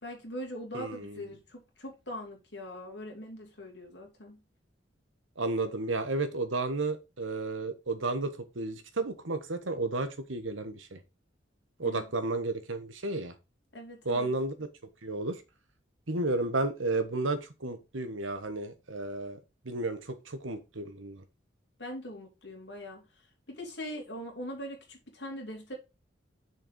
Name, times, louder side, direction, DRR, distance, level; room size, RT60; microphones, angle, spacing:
voice 1, 0.0-4.4 11.8-12.1 13.7-14.3 21.8-23.0 23.5-25.7, equal, 60° left, 2.9 m, -41 dB
voice 2, 0.7-1.2 5.4-11.0 11.8-13.3 14.0-14.7 15.0-15.4 16.1-19.4 19.6-21.2, right 2 dB, 90° right, 1.3 m, -32 dB
6.6 x 4.6 x 5.2 m
head